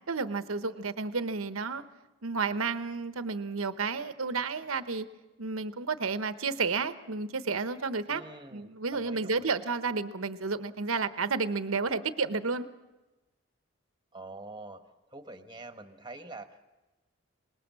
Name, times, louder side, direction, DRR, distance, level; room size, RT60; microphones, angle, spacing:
voice 1, 0.1-1.8 2.2-5.1 5.4-8.2 8.5-12.6, right 4 dB, 85° right, 11 dB, 1.0 m, -31 dB
voice 2, 8.1-9.6 14.1-14.8 15.1-16.7, right 2 dB, 20° right, 7 dB, 1.3 m, -46 dB
25.5 x 20.0 x 7.5 m, 1.1 s
head